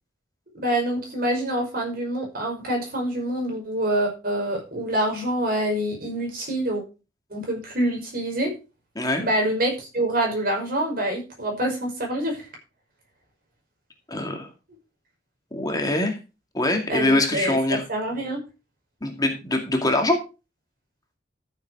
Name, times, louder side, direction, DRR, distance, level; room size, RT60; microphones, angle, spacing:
voice 1, 0.6-6.8 7.3-8.5 9.2-12.5 16.9-18.4, right 1 dB, 55° right, 1 dB, 5.7 m, -26 dB
voice 2, 14.1-14.5 15.5-16.2 16.5-17.8 19.0-20.2, left 1 dB, 20° left, 3 dB, 2.1 m, -23 dB
13.5 x 7.3 x 4.7 m, 0.31 s
head